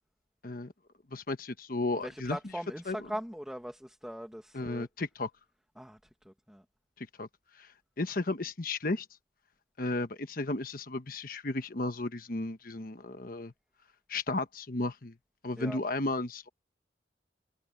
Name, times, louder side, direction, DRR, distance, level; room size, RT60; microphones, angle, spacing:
voice 1, 1.1-2.4 2.9-3.0 4.5-5.3 7.0-7.3 7.6-7.7 8.0-9.1 9.8-13.5 14.1-15.1 15.4-16.5, left 2 dB, 50° left, 1.1 m, -34 dB
voice 2, 1.9-4.9 5.8-6.6 15.6-15.8, equal, 5° right, 1.9 m, -41 dB
head